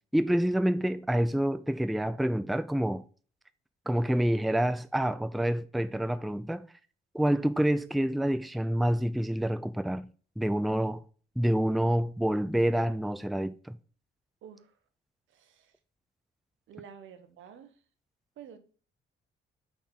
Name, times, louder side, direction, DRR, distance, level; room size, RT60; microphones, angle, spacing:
voice 1, 0.1-3.0 3.9-6.7 7.1-10.1 10.4-11.0 11.4-13.8, right 1 dB, ahead, 0.4 m, -27 dB
voice 2, 14.4-14.8 15.3-15.7 16.7-17.8 18.4-18.6, right 8 dB, 75° right, 1.1 m, -50 dB
5.6 x 4.3 x 5.9 m
cardioid pair, 90°, 20 cm